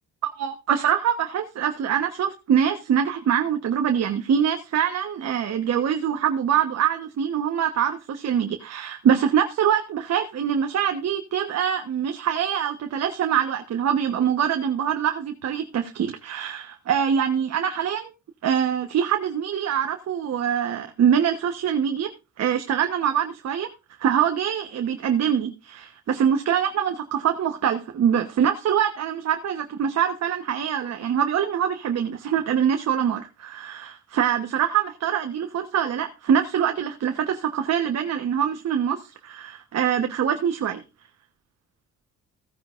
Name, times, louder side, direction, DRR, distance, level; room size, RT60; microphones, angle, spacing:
voice 1, 0.2-18.1 18.4-22.1 22.4-23.7 24.0-40.8, right 8 dB, 60° right, 6 dB, 1.2 m, -24 dB
15.5 x 9.5 x 2.5 m, 0.28 s
cardioid pair, 90°, 30 cm